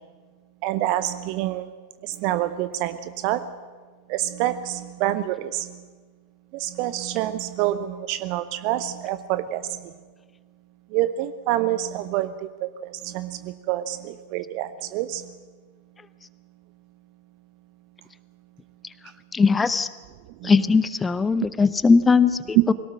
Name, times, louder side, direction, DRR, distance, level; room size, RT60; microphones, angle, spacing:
voice 1, 0.6-1.7 2.0-3.5 4.1-5.8 6.5-9.9 10.9-15.3 20.4-20.5, right 13 dB, 45° right, 14 dB, 0.7 m, -27 dB
voice 2, 19.3-19.9 20.4-22.7, left 4 dB, 15° left, 15 dB, 0.8 m, -19 dB
21.0 x 18.0 x 7.6 m, 1.5 s
figure-of-eight pair, 90°, 0 cm